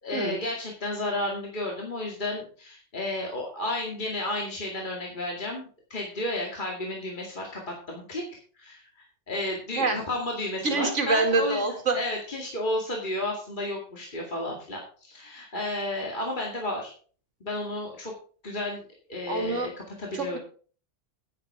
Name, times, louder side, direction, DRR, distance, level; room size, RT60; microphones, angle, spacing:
voice 1, 0.0-8.2 8.6-11.6 11.9-16.9 17.4-18.1 18.4-18.8 19.1-19.7 20.0-20.4, left 1 dB, 40° left, -1 dB, 2.4 m, -32 dB
voice 2, 10.6-12.0 19.3-19.7 20.1-20.4, right 3 dB, 85° right, 4 dB, 2.5 m, -25 dB
10.0 x 9.9 x 4.8 m, 0.42 s
omnidirectional pair, 1.2 m